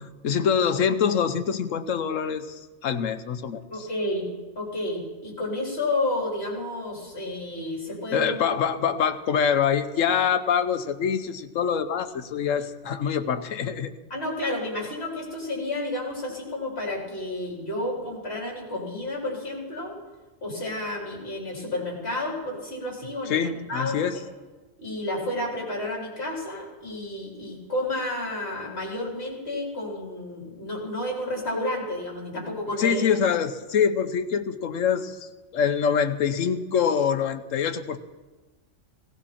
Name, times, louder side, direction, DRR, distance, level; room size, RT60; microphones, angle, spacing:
voice 1, 0.0-3.9 8.1-13.9 23.3-24.2 32.8-38.0, left 7 dB, 75° left, 10 dB, 1.2 m, -25 dB
voice 2, 3.7-4.3 4.6-8.4 14.1-19.9 20.4-24.0 24.8-33.1, left 1 dB, 50° left, -2 dB, 4.5 m, -31 dB
17.0 x 17.0 x 4.3 m, 1.2 s
omnidirectional pair, 1.3 m